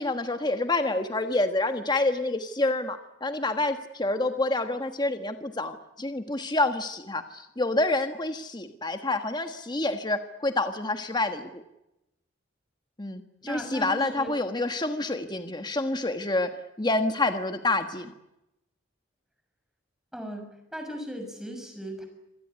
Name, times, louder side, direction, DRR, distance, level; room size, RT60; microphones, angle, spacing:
voice 1, 0.0-11.6 13.0-16.5 16.8-18.1, left 2 dB, 20° left, 7 dB, 1.4 m, -28 dB
voice 2, 13.4-14.3 20.1-22.1, equal, 5° right, 4 dB, 6.5 m, -37 dB
26.5 x 18.0 x 9.9 m, 0.90 s
head